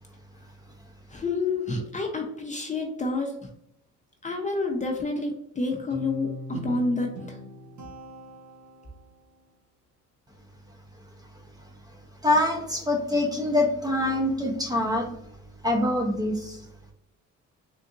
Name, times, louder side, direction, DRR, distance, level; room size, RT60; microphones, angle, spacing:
voice 1, 1.1-3.3 4.2-7.4, left 3 dB, 25° left, 2 dB, 0.6 m, -29 dB
Guitar, 5.9-9.2, right 1 dB, 70° right, 1.1 m, -40 dB
voice 2, 12.2-15.1 15.6-16.6, left 1 dB, 15° right, 1 dB, 0.7 m, -24 dB
3.7 x 2.5 x 2.5 m, 0.77 s
cardioid pair, 90°, 30 cm